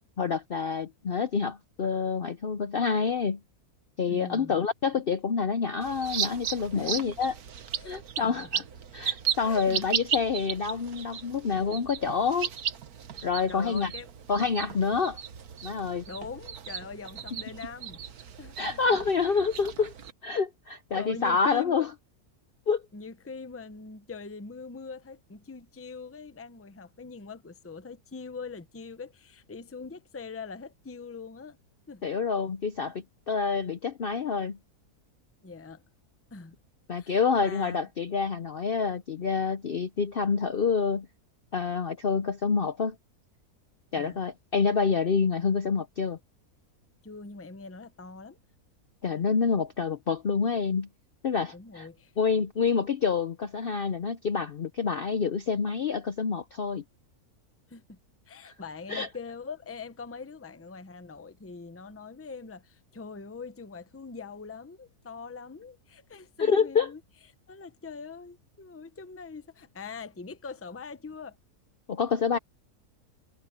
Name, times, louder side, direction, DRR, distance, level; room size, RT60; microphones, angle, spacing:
voice 1, 0.2-3.4 4.0-7.3 7.8-8.5 8.9-12.5 13.2-13.9 14.3-15.2 15.6-16.0 18.6-19.9 20.2-21.9 22.7-22.8 32.0-34.6 36.9-41.1 41.5-43.0 43.9-46.2 49.0-50.9 51.2-51.9 52.2-56.8 58.4-58.5 58.9-59.1 66.4-66.9 71.9-72.4, left 5 dB, 50° left, 0.7 m, -27 dB
voice 2, 4.1-4.6 6.7-7.2 7.7-8.6 9.4-9.9 13.5-14.1 16.1-19.0 20.9-21.9 22.9-31.6 31.9-32.0 35.4-35.8 36.3-36.6 36.9-37.8 44.0-44.2 47.0-48.4 51.5-52.1 57.7-58.0 58.3-67.0 67.5-71.4 72.3-72.4, left 4 dB, 15° left, 0.6 m, -43 dB
sound 1, 5.8-20.1, right 8 dB, 75° right, 1.6 m, -36 dB
omnidirectional pair, 1.6 m